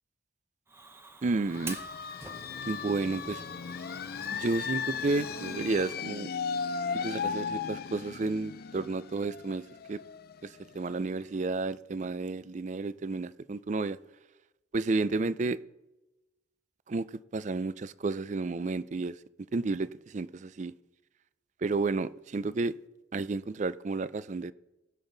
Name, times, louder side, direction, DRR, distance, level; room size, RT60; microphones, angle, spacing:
Fire, 0.7-6.0, right 3 dB, 15° right, 0.8 m, -47 dB
voice 1, 1.2-1.8 2.7-3.4 4.3-6.3 6.9-10.0 10.4-14.0 14.7-15.6 16.9-19.2 19.5-20.7 21.6-22.7 23.1-24.5, right 3 dB, 40° right, 0.4 m, -31 dB
sound 1, 1.5-10.9, left 6 dB, 55° left, 0.4 m, -36 dB
19.5 x 7.2 x 3.9 m
head